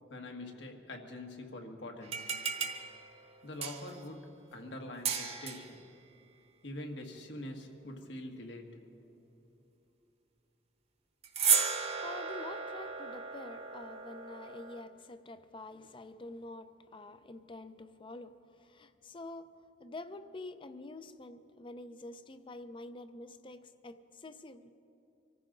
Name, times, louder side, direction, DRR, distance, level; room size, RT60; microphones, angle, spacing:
voice 1, 0.1-2.3 3.4-5.8 6.6-8.8, left 1 dB, 85° left, 1.6 m, -44 dB
sound 1, 2.0-4.1 5.1-5.8 11.2-14.8, right 6 dB, 35° right, 1.0 m, -34 dB
voice 2, 11.8-24.7, left 2 dB, 30° left, 0.5 m, -47 dB
24.5 x 14.5 x 3.9 m
head